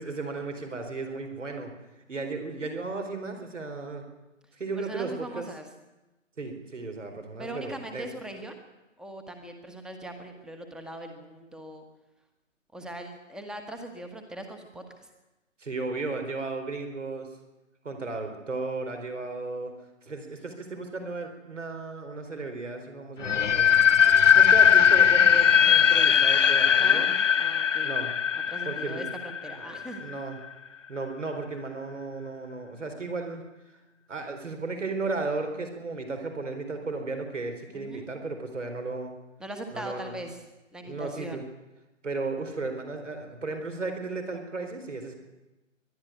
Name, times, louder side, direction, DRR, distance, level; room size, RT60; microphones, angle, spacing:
voice 1, 0.0-1.7 2.1-4.0 4.6-5.5 6.4-8.1 15.6-17.3 17.8-19.7 20.0-23.7 24.3-27.1 27.8-28.1 28.6-29.1 29.6-30.4 30.9-33.4 34.1-39.1 39.7-40.1 40.8-41.4 42.0-45.1, right 3 dB, 65° right, 6 dB, 4.3 m, -35 dB
voice 2, 4.8-5.7 7.4-8.5 9.0-11.8 12.7-15.1 26.7-27.1 27.4-27.9 28.5-30.0 37.7-38.1 39.4-40.4 40.7-41.4, right 1 dB, ahead, 6 dB, 1.4 m, -40 dB
sound 1, 23.2-30.1, left 8 dB, 70° left, 0.7 m, -20 dB
21.5 x 12.0 x 9.9 m, 1.1 s
figure-of-eight pair, 135°, 39 cm